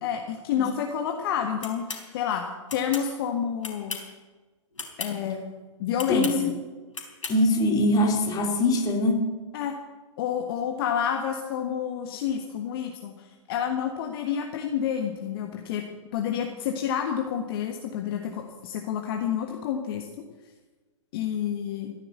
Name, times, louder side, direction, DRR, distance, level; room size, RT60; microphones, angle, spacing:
voice 1, 0.0-4.0 5.0-5.4 5.8-6.5 9.5-9.8 10.2-15.8 16.1-20.1 21.1-21.9, left 8 dB, 45° left, 3 dB, 1.5 m, -29 dB
sound 1, 1.6-2.0 2.7-3.1 3.6-4.1 4.7-5.1 6.0-6.4 6.9-7.4, left 4 dB, 70° left, 3.8 m, -35 dB
voice 2, 6.1-6.5 7.3-9.2, left 1 dB, 20° left, 3 dB, 2.9 m, -23 dB
14.5 x 10.5 x 7.9 m, 1.3 s
figure-of-eight pair, 110°, 17 cm